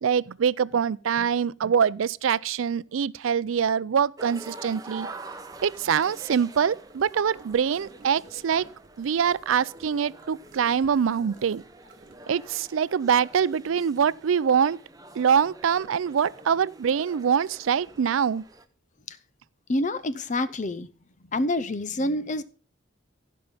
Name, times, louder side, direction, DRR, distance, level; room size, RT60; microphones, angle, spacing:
voice 1, 0.0-5.1 5.6-8.6 9.0-11.6 12.3-14.8 15.2-18.4, right 7 dB, 85° right, 0.4 m, -24 dB
sound 1, 4.2-18.6, right 2 dB, 20° right, 0.8 m, -46 dB
Gurgling / Car passing by / Sink (filling or washing), 6.9-12.6, right 2 dB, 40° right, 2.5 m, -55 dB
voice 2, 19.7-20.9 21.3-22.4, left 1 dB, 40° left, 0.6 m, -27 dB
15.5 x 5.4 x 5.5 m
head